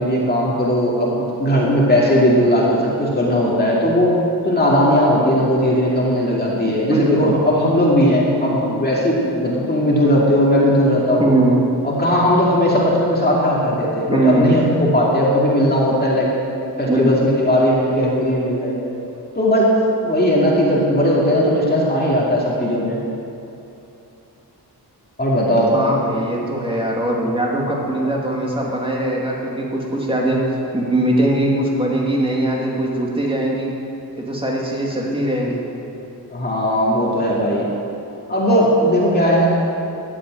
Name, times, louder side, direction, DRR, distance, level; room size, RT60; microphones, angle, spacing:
voice 1, 0.0-4.1 4.4-11.3 11.8-16.3 16.8-18.7 19.3-19.7 20.0-23.0 25.2-25.7 36.3-37.7 38.3-39.5, equal, 25° left, -5 dB, 2.4 m, -17 dB
voice 2, 6.7-7.4 11.2-11.6 14.1-14.6 16.9-17.1 25.7-30.4 30.7-33.7 34.2-35.6, right 1 dB, 15° right, -3 dB, 2.4 m, -20 dB
12.5 x 8.1 x 8.9 m, 2.8 s
wide cardioid pair, 135°, 40 cm